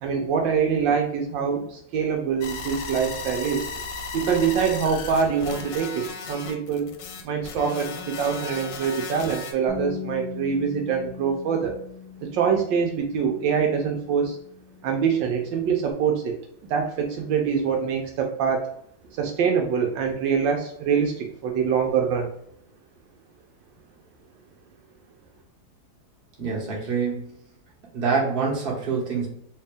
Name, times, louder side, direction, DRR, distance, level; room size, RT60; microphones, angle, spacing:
voice 1, 0.0-3.7 4.1-6.9 7.2-11.8 12.3-14.4 14.8-16.4 16.6-18.7 19.1-22.3, right 6 dB, 75° right, 2 dB, 1.2 m, -24 dB
sound 1, 2.4-9.5, left 4 dB, 75° left, 1.1 m, -35 dB
Bass guitar, 9.7-15.9, left 7 dB, 40° left, 0.5 m, -40 dB
voice 2, 26.4-27.3 27.9-29.3, right 5 dB, 35° right, -3 dB, 1.1 m, -26 dB
3.3 x 2.7 x 3.4 m, 0.71 s
omnidirectional pair, 2.1 m